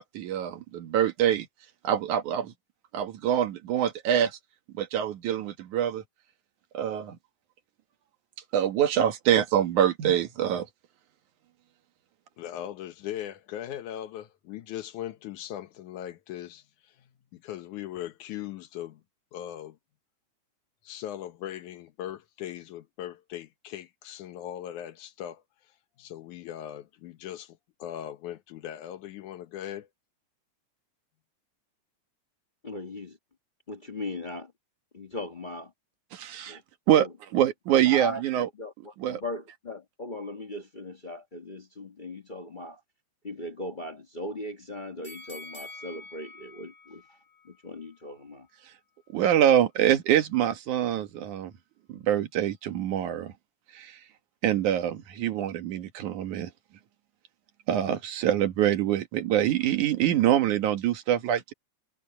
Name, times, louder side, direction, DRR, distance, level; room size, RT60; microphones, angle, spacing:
voice 1, 0.0-1.5 1.8-2.5 2.9-4.4 4.8-6.0 6.7-7.2 8.5-10.7 36.1-36.6 36.9-37.1 37.3-38.5 39.0-39.2 49.1-51.5 51.9-53.3 53.7-54.0 54.4-56.5 57.7-61.5, right 10 dB, 80° right, 2.9 m, -25 dB
voice 2, 12.4-16.6 17.3-19.0 19.3-19.8 20.8-25.4 26.0-29.9, left 11 dB, 90° left, 2.6 m, -39 dB
voice 3, 32.6-33.2 33.7-34.5 34.9-35.7 36.5-36.6 36.9-37.1 37.8-38.2 38.6-42.8 43.2-47.0 47.4-48.5, left 1 dB, 45° left, 0.6 m, -38 dB
sound 1, 45.0-48.1 48.6-48.7, left 2 dB, 10° left, 6.6 m, -47 dB
omnidirectional pair, 3.4 m